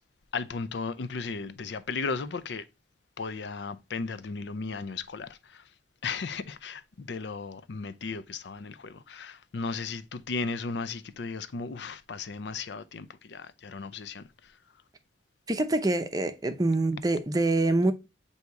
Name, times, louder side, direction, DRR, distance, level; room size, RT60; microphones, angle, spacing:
voice 1, 0.3-2.7 3.2-5.7 6.0-14.6, left 4 dB, 75° left, 0.5 m, -35 dB
voice 2, 15.5-17.9, right 2 dB, 20° right, 0.6 m, -25 dB
8.1 x 2.8 x 4.6 m
head